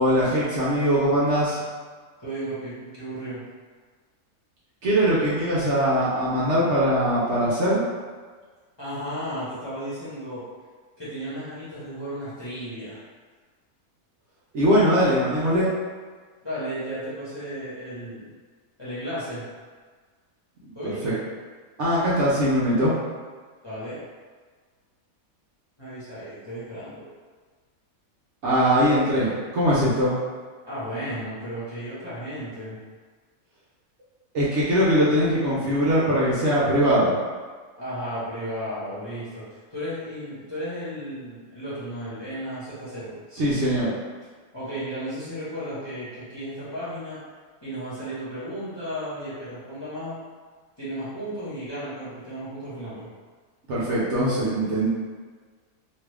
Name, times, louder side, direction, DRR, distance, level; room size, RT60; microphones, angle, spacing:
voice 1, 0.0-1.6 4.8-7.8 14.5-15.7 21.0-21.2 21.8-22.9 28.4-30.1 34.3-37.1 43.3-43.9 53.7-54.9, equal, 60° right, -8 dB, 0.9 m, -21 dB
voice 2, 2.2-3.4 8.8-10.4 11.0-13.0 16.4-18.3 18.8-19.4 20.7-21.2 23.6-24.0 25.8-27.1 30.6-32.8 37.8-43.2 44.5-47.2 47.6-50.2 50.8-53.1, equal, 20° left, -12 dB, 0.9 m, -34 dB
2.9 x 2.3 x 3.3 m, 1.5 s
omnidirectional pair, 1.5 m